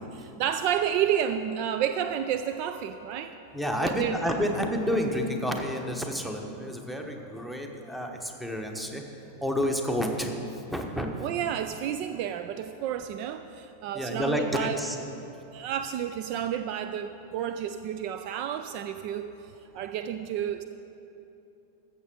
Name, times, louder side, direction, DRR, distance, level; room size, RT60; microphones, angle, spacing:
voice 1, 0.4-3.3 3.8-4.2 11.2-14.8 15.5-20.6, right 9 dB, 45° right, 10 dB, 0.4 m, -30 dB
voice 2, 3.5-9.0 9.4-11.1 13.9-15.0 15.5-15.7, equal, 5° right, 3 dB, 1.1 m, -30 dB
14.0 x 7.5 x 5.0 m, 2.9 s
figure-of-eight pair, 90°, 0 cm